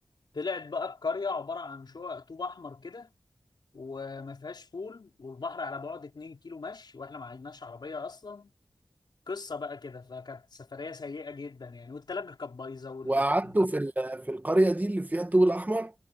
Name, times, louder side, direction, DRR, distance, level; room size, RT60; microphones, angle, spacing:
voice 1, 0.3-3.1 3.7-8.5 9.3-13.2, left 4 dB, 80° left, 4.5 m, -38 dB
voice 2, 13.0-15.9, right 1 dB, 20° right, 1.4 m, -25 dB
wide cardioid pair, 85°, 7 cm